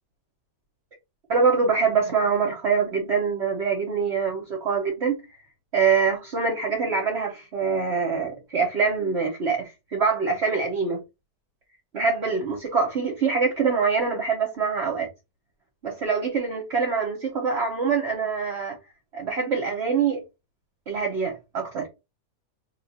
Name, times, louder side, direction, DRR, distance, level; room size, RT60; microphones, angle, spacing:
voice 1, 1.3-5.4 5.7-11.0 11.9-15.1 15.8-18.8 19.1-20.2 20.9-21.9, right 5 dB, 50° right, 0.9 m, -24 dB
2.6 x 2.4 x 4.1 m
omnidirectional pair, 1.9 m